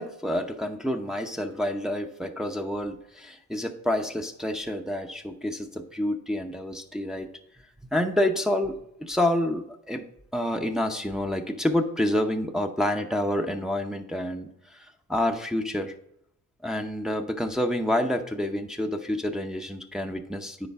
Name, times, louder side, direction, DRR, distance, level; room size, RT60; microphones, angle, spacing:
voice 1, 0.0-7.3 7.9-10.0 10.3-15.9 16.6-20.7, left 1 dB, ahead, 3 dB, 0.7 m, -28 dB
9.8 x 3.9 x 3.5 m, 0.75 s
cardioid pair, 90°, 30 cm